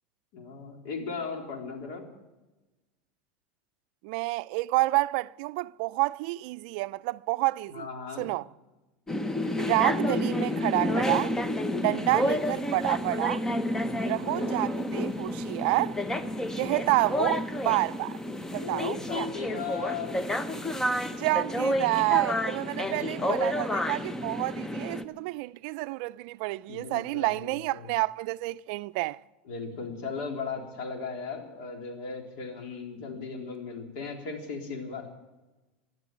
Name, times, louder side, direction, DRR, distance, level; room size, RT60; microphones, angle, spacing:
voice 1, 0.3-2.0 7.7-8.3 11.8-12.3 14.0-14.6 18.6-20.2 22.8-23.6 26.7-27.9 29.5-35.1, left 5 dB, 65° left, 3.8 m, -37 dB
voice 2, 4.0-7.9 8.2-8.5 9.6-11.3 11.7-13.4 14.1-16.0 16.6-18.2 18.5-19.3 21.2-29.2, right 21 dB, 65° right, 0.4 m, -29 dB
sound 1, 9.1-25.0, left 1 dB, 10° left, 0.8 m, -30 dB
12.0 x 12.0 x 9.2 m
supercardioid pair, 130°, 5 cm